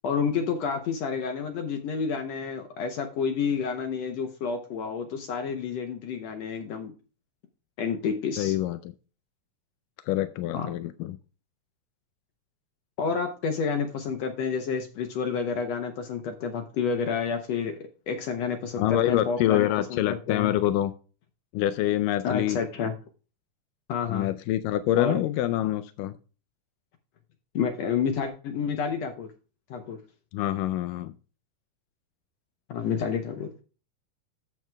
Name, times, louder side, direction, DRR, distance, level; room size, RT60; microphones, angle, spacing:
voice 1, 0.0-6.9 7.8-8.5 10.5-10.7 13.0-20.5 22.2-22.9 23.9-24.3 24.9-25.2 27.5-29.3 29.7-30.0 32.7-33.5, left 6 dB, 70° left, 6 dB, 1.7 m, -29 dB
voice 2, 8.4-8.9 10.1-11.2 18.8-20.9 21.5-22.6 24.1-26.1 30.3-31.1, left 13 dB, 85° left, 12 dB, 2.2 m, -26 dB
13.5 x 7.5 x 2.2 m, 0.35 s
omnidirectional pair, 3.8 m